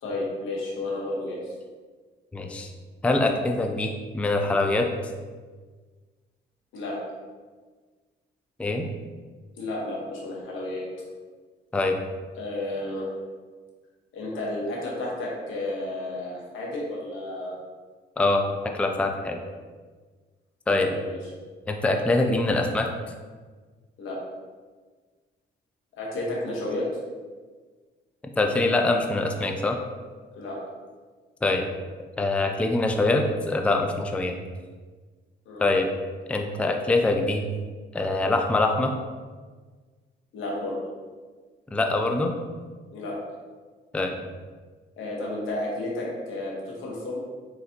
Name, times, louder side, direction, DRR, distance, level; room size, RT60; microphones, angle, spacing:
voice 1, 0.0-1.5 6.7-6.9 9.6-10.9 12.4-13.1 14.1-17.5 20.7-21.3 24.0-24.2 26.0-26.9 30.3-30.6 35.4-35.7 40.3-40.8 42.9-43.2 45.0-47.2, left 2 dB, 85° left, -3 dB, 1.2 m, -32 dB
voice 2, 2.3-2.7 3.0-5.0 8.6-8.9 11.7-11.9 18.2-18.4 18.7-19.4 20.7-20.9 21.7-22.9 28.4-29.8 31.4-31.7 32.2-34.3 35.6-35.9 36.3-37.4 37.9-38.9 41.7-42.3 43.9-44.1, left 2 dB, 5° left, 4 dB, 0.4 m, -24 dB
4.1 x 3.8 x 2.8 m, 1.4 s
cardioid pair, 90°, 20 cm